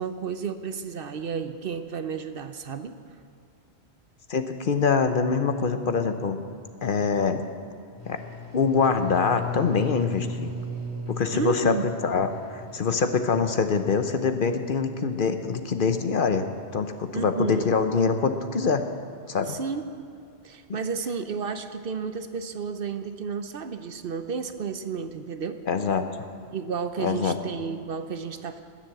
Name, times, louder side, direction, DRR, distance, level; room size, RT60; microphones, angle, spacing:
voice 1, 0.0-2.9 11.3-11.9 17.1-17.8 19.5-19.8 20.4-25.6 26.5-28.6, right 6 dB, 60° right, 9 dB, 0.9 m, -32 dB
voice 2, 4.3-6.4 6.8-7.4 8.1-8.2 8.5-10.5 11.1-11.8 12.0-16.5 16.7-18.8 19.3-19.6 20.7-20.8 25.7-26.0 27.0-27.4, left 5 dB, 55° left, 8 dB, 0.9 m, -24 dB
sound 1, 8.0-14.2, left 2 dB, 15° left, 3.9 m, -37 dB
20.0 x 7.4 x 7.6 m, 2.4 s
omnidirectional pair, 1.1 m